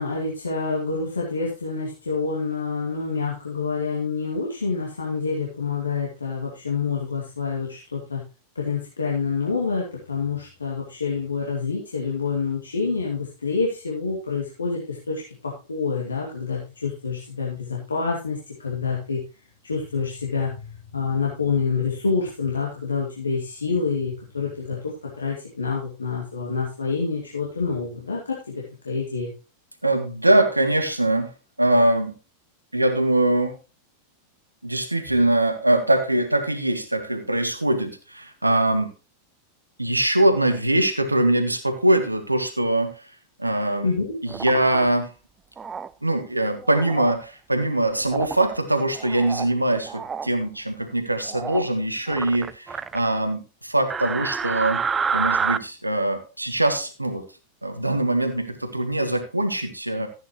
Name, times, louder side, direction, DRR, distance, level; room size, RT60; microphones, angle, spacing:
voice 1, 0.0-8.2 8.5-19.2 19.6-29.3 43.8-44.2, left 4 dB, 75° left, -3 dB, 2.5 m, -27 dB
voice 2, 29.8-31.3 31.6-32.1 32.7-33.6 34.6-38.9 39.8-42.9 43.4-43.9 44.2-45.1 46.0-54.8 55.1-57.2 57.6-60.1, right 1 dB, 85° right, 7 dB, 1.6 m, -22 dB
sound 1, 44.3-44.8 45.6-45.9 46.6-47.2 48.0-48.5 48.9-49.5 49.8-50.3 51.3-51.7 52.1-53.0 53.9-55.6, right 6 dB, 20° right, 0.4 m, -28 dB
14.0 x 9.1 x 3.2 m, 0.31 s
figure-of-eight pair, 90°, 0 cm